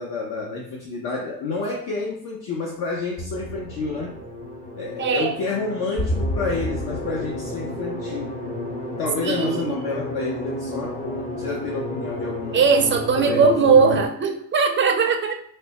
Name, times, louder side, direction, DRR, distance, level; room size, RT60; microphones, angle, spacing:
voice 1, 0.0-4.2 4.8-8.4 9.0-12.6 13.1-14.1, left 3 dB, 55° left, -1 dB, 0.8 m, -29 dB
sound 1, 3.2-14.1, left 1 dB, 20° left, 0.6 m, -31 dB
voice 2, 5.0-5.3 9.2-9.8 12.5-15.3, right 5 dB, 25° right, 4 dB, 0.5 m, -19 dB
3.3 x 2.1 x 4.1 m, 0.66 s
cardioid pair, 130°, 44 cm